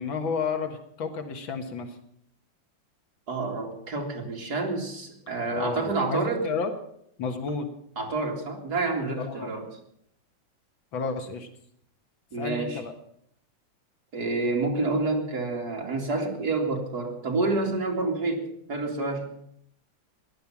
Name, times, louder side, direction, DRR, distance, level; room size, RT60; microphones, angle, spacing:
voice 1, 0.0-2.0 5.5-6.7 7.2-7.7 9.2-9.7 10.9-11.5 12.4-12.9, left 5 dB, 90° left, 6 dB, 2.4 m, -31 dB
voice 2, 3.3-6.5 8.0-9.7 12.3-12.8 14.1-19.3, right 3 dB, 55° right, 1 dB, 3.1 m, -28 dB
16.0 x 11.5 x 7.2 m, 0.70 s
omnidirectional pair, 2.1 m